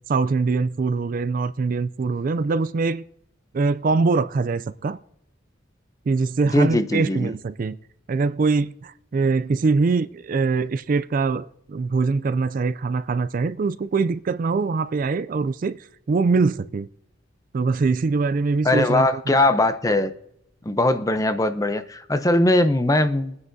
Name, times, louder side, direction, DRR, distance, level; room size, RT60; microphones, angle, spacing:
voice 1, 0.1-3.0 3.5-5.0 6.1-7.8 8.1-15.8 16.1-16.9 17.5-19.4, right 4 dB, 45° right, 0.3 m, -23 dB
voice 2, 6.5-7.3 18.6-20.1 20.6-23.4, left 2 dB, 15° left, 0.6 m, -20 dB
23.5 x 9.7 x 2.7 m
head